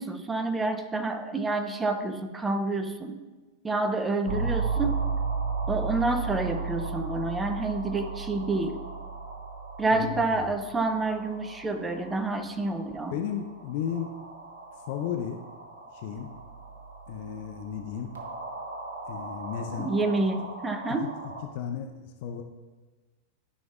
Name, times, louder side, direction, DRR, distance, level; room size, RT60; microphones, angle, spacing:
voice 1, 0.0-3.1 3.6-5.1 5.7-8.8 9.8-13.2 19.8-21.1, right 2 dB, 15° right, 8 dB, 0.6 m, -28 dB
sound 1, 4.3-21.4, right 4 dB, 65° right, 1.2 m, -36 dB
voice 2, 9.9-10.4 13.1-14.1 14.9-15.4 15.9-16.3 17.1-18.1 19.1-19.9 20.9-21.1 21.5-22.4, left 8 dB, 50° left, 5 dB, 0.5 m, -34 dB
12.0 x 5.3 x 2.4 m, 1.2 s
figure-of-eight pair, 90°, 0 cm